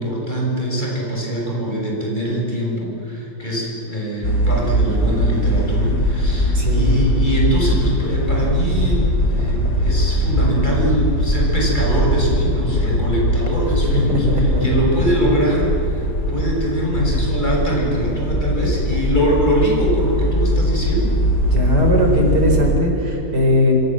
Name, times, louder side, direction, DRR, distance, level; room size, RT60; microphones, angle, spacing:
voice 1, 0.0-21.2, equal, 25° left, -2 dB, 7.1 m, -23 dB
sound 1, 4.2-22.7, equal, 55° left, 4.0 m, -20 dB
voice 2, 6.5-7.0 13.9-14.0 14.3-14.7 17.0-17.1 21.5-23.7, left 1 dB, 80° right, 2 dB, 5.2 m, -18 dB
26.5 x 26.0 x 7.8 m, 2.9 s
omnidirectional pair, 1.8 m